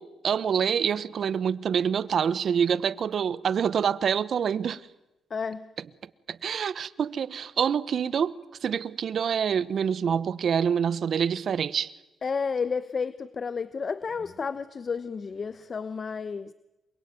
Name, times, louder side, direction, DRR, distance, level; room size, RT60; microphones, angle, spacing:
voice 1, 0.0-4.8 6.0-11.9, right 7 dB, 60° right, 1.0 m, -26 dB
voice 2, 5.3-5.7 12.2-16.5, left 5 dB, 40° left, 0.9 m, -31 dB
28.0 x 23.0 x 9.2 m
cardioid pair, 95°, 0 cm